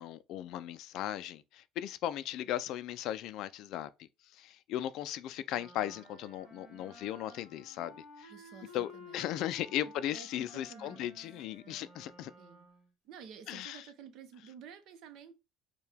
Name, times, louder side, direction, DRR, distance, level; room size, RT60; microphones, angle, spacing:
voice 1, 0.0-8.3 8.7-12.3 13.5-13.9, left 12 dB, 50° left, 0.3 m, -37 dB
Wind instrument woodwind instrument, 5.5-12.9, left 1 dB, 10° right, 1.8 m, -54 dB
voice 2, 8.3-9.2 9.8-11.1 11.6-11.9 12.4-12.7 13.0-15.3, right 7 dB, 50° right, 0.7 m, -52 dB
4.6 x 2.2 x 3.4 m
cardioid pair, 180°, 0 cm